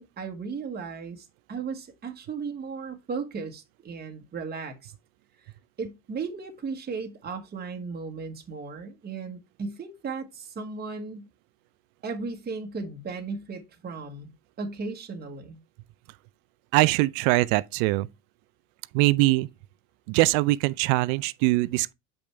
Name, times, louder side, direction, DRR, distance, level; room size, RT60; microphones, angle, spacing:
voice 1, 0.0-4.9 5.8-11.3 12.0-14.3 14.6-15.6, right 4 dB, 25° right, 1.3 m, -36 dB
voice 2, 16.7-18.1 18.9-19.5 20.1-21.9, right 20 dB, 70° right, 0.5 m, -22 dB
7.0 x 5.2 x 3.3 m
supercardioid pair, 95°, 39 cm